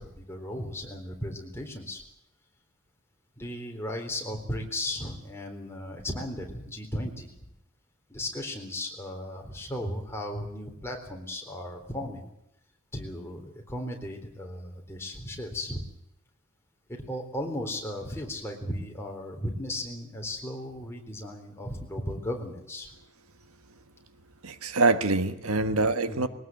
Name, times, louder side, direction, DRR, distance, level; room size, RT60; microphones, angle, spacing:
voice 1, 0.0-2.0 3.4-7.5 8.1-12.3 12.9-15.9 16.9-22.9 25.6-25.8 26.1-26.3, left 1 dB, 10° left, 1 dB, 3.9 m, -36 dB
voice 2, 24.4-26.3, right 3 dB, 85° right, 10 dB, 1.4 m, -25 dB
22.0 x 19.0 x 7.8 m, 0.80 s
head